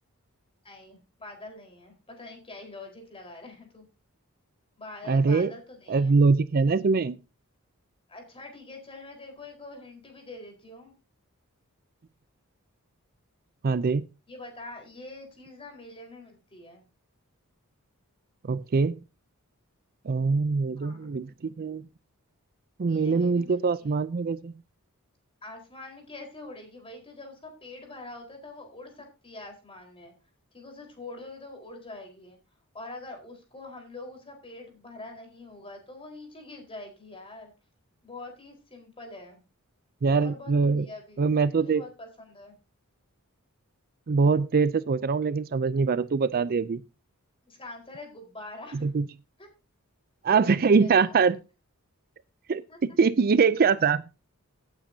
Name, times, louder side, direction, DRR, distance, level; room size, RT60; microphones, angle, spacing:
voice 1, 0.6-3.9 4.8-6.2 8.1-10.9 14.3-16.8 20.8-21.1 22.8-23.9 25.4-30.1 30.5-32.4 32.7-37.5 38.0-39.4 40.2-41.3 41.5-42.5 47.4-48.9 49.4-49.5 50.8-51.3 52.7-53.0, left 2 dB, 25° left, 4.3 m, -44 dB
voice 2, 5.1-5.5 5.9-7.2 13.6-14.1 18.5-19.0 20.1-21.8 22.8-24.5 40.0-40.9 41.2-41.8 44.1-46.8 48.8-49.1 50.2-51.4 52.5-54.0, right 4 dB, 40° right, 0.4 m, -23 dB
17.0 x 8.8 x 2.7 m
head